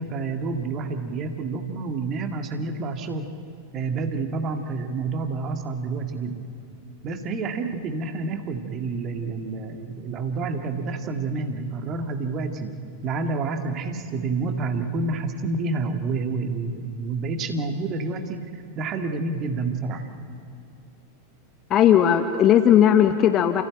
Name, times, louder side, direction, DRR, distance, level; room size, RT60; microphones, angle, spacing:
voice 1, 0.0-3.3 3.7-6.5 7.0-12.7 13.0-20.1, right 3 dB, 30° right, 5 dB, 2.0 m, -29 dB
voice 2, 21.7-23.6, left 10 dB, 30° left, 8 dB, 1.0 m, -17 dB
29.5 x 15.5 x 9.2 m, 2.5 s
figure-of-eight pair, 90°, 0 cm